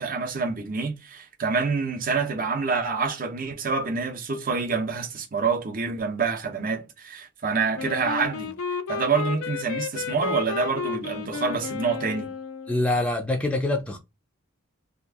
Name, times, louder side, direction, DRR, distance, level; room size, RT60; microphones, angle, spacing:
voice 1, 0.0-8.5 8.9-12.3, right 5 dB, 40° right, 0.6 m, -27 dB
Wind instrument woodwind instrument, 7.8-12.8, left 6 dB, 85° left, 0.4 m, -32 dB
voice 2, 12.7-14.0, left 2 dB, 5° left, 0.4 m, -25 dB
2.8 x 2.4 x 3.4 m
head